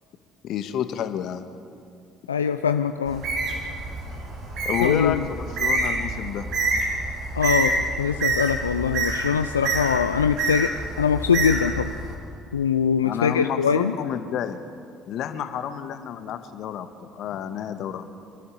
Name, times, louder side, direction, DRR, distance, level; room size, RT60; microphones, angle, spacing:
voice 1, 0.4-1.4 4.6-6.5 13.0-14.6 15.1-18.1, left 9 dB, 60° left, 9 dB, 1.4 m, -30 dB
voice 2, 2.3-3.2 4.8-5.3 7.4-10.7 11.0-11.9 12.5-14.0, left 7 dB, 90° left, 9 dB, 0.4 m, -22 dB
Bird, 3.1-12.1, right 3 dB, 60° right, 4.3 m, -27 dB
26.0 x 13.0 x 8.4 m, 2.5 s
hypercardioid pair, 55°, 0 cm